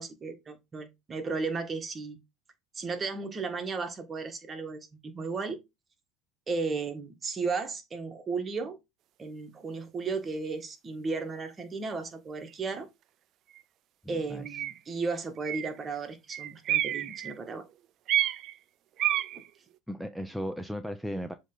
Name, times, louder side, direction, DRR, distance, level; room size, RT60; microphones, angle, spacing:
voice 1, 0.0-2.2 2.7-5.6 6.5-8.8 9.2-12.9 14.1-17.7, right 4 dB, 30° right, 1.7 m, -34 dB
sound 1, 12.5-12.6 13.5-13.6 14.4-14.8 15.4-15.8 16.3-17.5 18.1-18.6 19.0-19.5, right 13 dB, 55° right, 0.5 m, -29 dB
voice 2, 14.0-14.6 19.9-21.3, equal, ahead, 0.6 m, -36 dB
7.2 x 3.3 x 4.0 m
hypercardioid pair, 90°, 0 cm